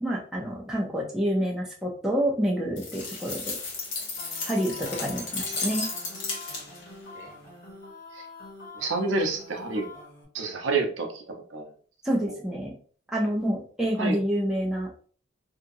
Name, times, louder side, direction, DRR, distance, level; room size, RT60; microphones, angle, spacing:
voice 1, 0.0-3.6 4.5-5.9 12.0-12.7 13.1-14.9, equal, 5° right, -4 dB, 0.5 m, -28 dB
sound 1, 2.8-6.9, left 3 dB, 85° left, 0.9 m, -34 dB
sound 2, 4.2-10.2, left 3 dB, 50° left, 1.2 m, -45 dB
voice 2, 8.7-9.9 10.3-11.6 12.3-12.4 14.0-14.2, right 3 dB, 80° right, 3 dB, 0.6 m, -29 dB
2.8 x 2.4 x 2.6 m, 0.43 s
head